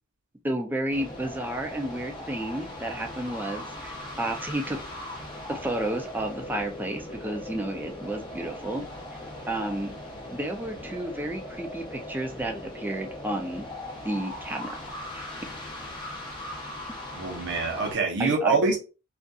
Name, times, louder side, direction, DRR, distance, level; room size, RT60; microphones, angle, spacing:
voice 1, 0.4-4.8 5.5-8.8 9.5-9.9 10.3-13.7 14.0-14.8 15.1-15.3 16.9-17.0 18.2-18.6, right 1 dB, 10° right, 0.3 m, -31 dB
sound 1, 0.9-17.9, left 1 dB, 20° left, 0.7 m, -39 dB
voice 2, 17.1-18.8, right 4 dB, 55° right, 0.8 m, -25 dB
2.7 x 2.4 x 2.3 m
head